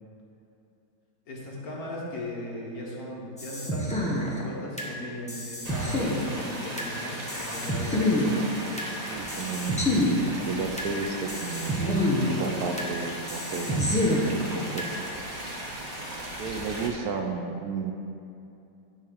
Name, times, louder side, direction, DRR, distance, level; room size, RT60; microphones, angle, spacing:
voice 1, 1.3-8.5, left 1 dB, 60° left, -3 dB, 1.8 m, -38 dB
sound 1, 3.4-4.9 5.3-6.9 7.3-8.9 9.3-10.9 11.3-12.9 13.3-14.9, left 1 dB, 5° left, 0.8 m, -27 dB
sound 2, 5.6-16.9, right 1 dB, 25° right, 1.0 m, -37 dB
voice 2, 9.1-12.0 12.3-13.8 14.5-14.8 16.4-17.9, right 5 dB, 70° right, 3 dB, 1.0 m, -33 dB
11.0 x 3.7 x 6.2 m, 2.7 s
omnidirectional pair, 1.8 m